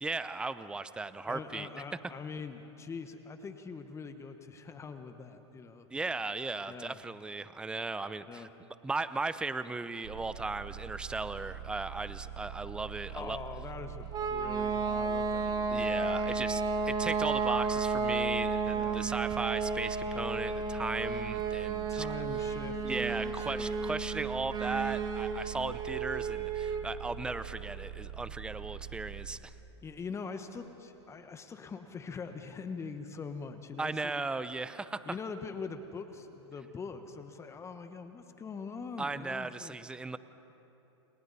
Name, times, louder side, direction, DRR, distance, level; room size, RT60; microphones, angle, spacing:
voice 1, 0.0-1.7 5.9-8.5 8.8-13.4 15.7-22.1 22.8-29.5 33.8-35.1 39.0-40.2, right 3 dB, 5° right, 14 dB, 0.6 m, -36 dB
voice 2, 1.3-5.9 6.6-7.0 8.2-8.5 13.1-15.9 16.3-16.6 18.7-19.1 21.9-23.6 29.8-34.2 35.1-39.8, left 5 dB, 20° left, 8 dB, 1.2 m, -43 dB
sound 1, 10.0-29.4, right 9 dB, 75° right, 1.9 m, -44 dB
sound 2, 14.1-26.9, right 4 dB, 25° right, 1.7 m, -32 dB
29.5 x 28.0 x 4.2 m, 3.0 s
hypercardioid pair, 120°, 15 cm